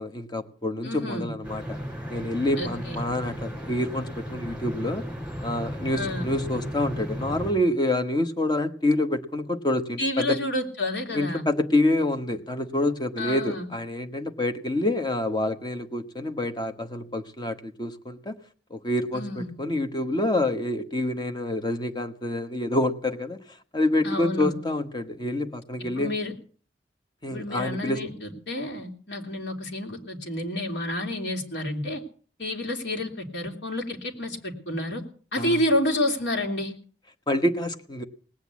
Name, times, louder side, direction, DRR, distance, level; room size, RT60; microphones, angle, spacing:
voice 1, 0.0-1.8 2.1-5.0 5.4-10.4 11.1-18.4 18.7-23.4 23.7-26.1 27.2-28.0 35.4-35.6 37.3-38.0, left 1 dB, 25° left, 7 dB, 1.2 m, -27 dB
voice 2, 0.8-1.3 2.6-3.0 5.9-6.3 10.0-11.4 13.2-13.7 19.1-19.5 24.0-24.6 25.8-26.3 27.3-32.0 32.4-35.0 35.3-36.7, left 1 dB, 85° left, 2 dB, 2.9 m, -29 dB
sound 1, 1.4-7.5, equal, 5° right, 5.9 m, -35 dB
19.0 x 8.2 x 8.3 m, 0.43 s
head